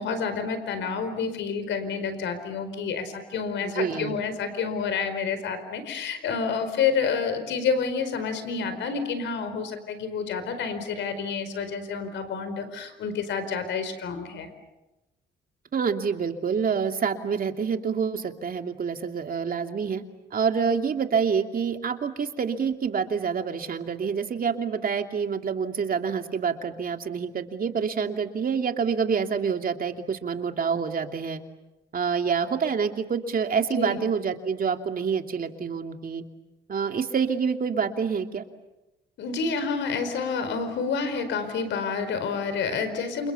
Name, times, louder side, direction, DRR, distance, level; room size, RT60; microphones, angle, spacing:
voice 1, 0.0-14.5 33.7-34.0 39.2-43.3, left 5 dB, 85° left, 10 dB, 4.8 m, -29 dB
voice 2, 3.6-4.2 15.7-20.0 20.3-31.4 31.9-36.2 36.7-38.4, right 6 dB, 50° right, 5 dB, 2.8 m, -27 dB
29.0 x 29.0 x 7.1 m, 0.99 s
cardioid pair, 85°, 19 cm